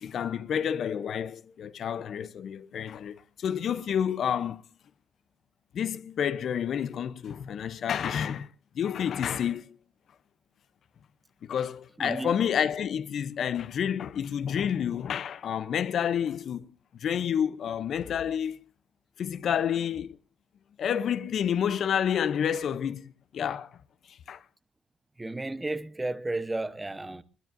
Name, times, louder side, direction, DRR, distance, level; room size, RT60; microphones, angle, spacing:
voice 1, 0.0-4.6 5.7-8.5 8.7-9.8 11.4-16.7 17.0-18.7 19.2-20.2 20.8-23.8 24.1-24.4, left 8 dB, 65° left, 0.7 m, -29 dB
voice 2, 12.0-12.4 25.2-27.2, right 2 dB, 15° right, 0.9 m, -33 dB
21.0 x 20.0 x 2.6 m
cardioid pair, 90°, 0 cm